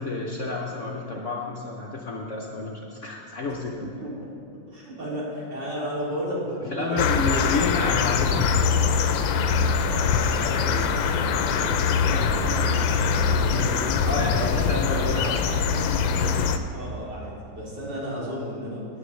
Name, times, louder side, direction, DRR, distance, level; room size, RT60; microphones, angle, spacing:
voice 1, 0.0-3.9 6.7-9.3 14.1-16.4, left 3 dB, 55° left, -1 dB, 0.9 m, -31 dB
voice 2, 4.7-7.6 9.8-15.4 16.7-18.9, equal, 65° right, -7 dB, 3.4 m, -34 dB
sound 1, 7.0-16.6, left 6 dB, 90° left, 1.3 m, -23 dB
13.0 x 9.4 x 3.1 m, 2.5 s
omnidirectional pair, 2.0 m